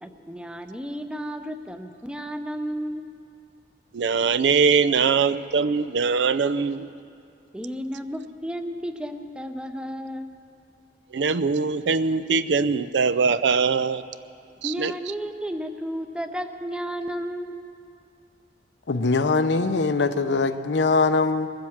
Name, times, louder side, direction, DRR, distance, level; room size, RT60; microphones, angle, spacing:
voice 1, 0.0-3.1 7.5-10.3 14.6-17.7, equal, 5° right, 7 dB, 0.7 m, -33 dB
voice 2, 3.9-6.9 11.1-14.0 14.6-14.9, right 5 dB, 80° right, 15 dB, 0.5 m, -22 dB
voice 3, 18.9-21.5, left 3 dB, 85° left, 11 dB, 0.7 m, -22 dB
20.0 x 7.8 x 7.2 m, 2.5 s
head